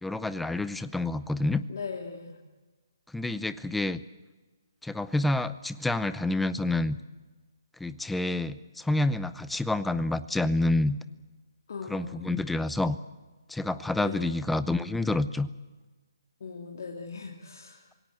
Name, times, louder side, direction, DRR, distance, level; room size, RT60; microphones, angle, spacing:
voice 1, 0.0-1.6 3.1-4.0 4.8-7.0 7.8-11.0 11.9-13.0 13.5-15.5, left 2 dB, 5° left, 14 dB, 0.6 m, -28 dB
voice 2, 1.7-2.4 11.7-12.3 14.0-14.4 16.4-17.8, left 5 dB, 55° left, 0 dB, 2.8 m, -39 dB
27.0 x 18.0 x 7.7 m, 1.3 s
figure-of-eight pair, 145°, 2 cm